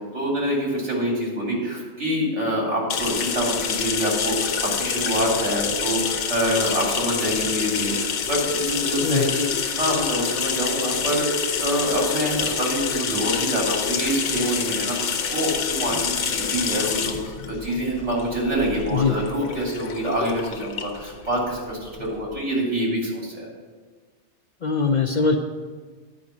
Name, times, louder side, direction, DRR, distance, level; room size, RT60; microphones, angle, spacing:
voice 1, 0.0-9.4 9.8-23.5, equal, 75° right, -3 dB, 3.1 m, -26 dB
sound 1, 2.9-22.3, left 6 dB, 90° left, 1.1 m, -27 dB
voice 2, 24.6-25.4, left 5 dB, 50° left, 4 dB, 0.6 m, -21 dB
9.6 x 5.1 x 7.2 m, 1.5 s
omnidirectional pair, 1.2 m